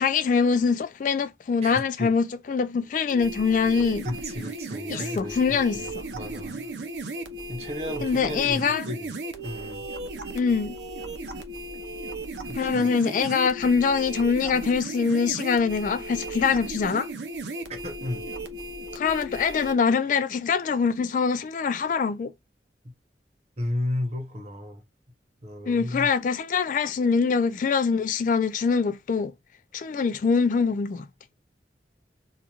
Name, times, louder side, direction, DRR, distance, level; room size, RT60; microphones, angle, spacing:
voice 1, 0.0-4.1 4.9-6.1 8.0-8.8 10.3-10.8 12.5-17.1 18.9-22.3 25.7-29.3 29.7-31.1, left 5 dB, 45° left, 0.3 m, -24 dB
voice 2, 1.6-2.1 4.0-5.9 6.1-6.7 7.5-9.1 9.4-9.9 12.5-12.9 13.2-13.3 17.7-18.3 23.6-24.8 25.4-26.1, left 1 dB, 35° right, 0.9 m, -33 dB
sound 1, 3.1-19.7, right 2 dB, 75° right, 0.6 m, -36 dB
3.0 x 2.4 x 2.3 m
head